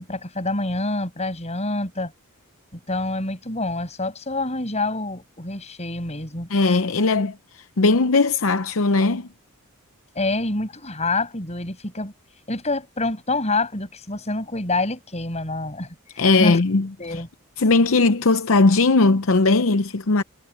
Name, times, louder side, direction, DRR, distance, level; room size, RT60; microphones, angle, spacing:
voice 1, 0.0-2.1 2.7-6.5 10.1-12.1 12.5-16.6 17.0-17.3, left 2 dB, 30° left, 6.2 m, -27 dB
voice 2, 6.5-9.3 16.2-17.2 17.6-20.2, left 3 dB, 65° left, 0.7 m, -19 dB
head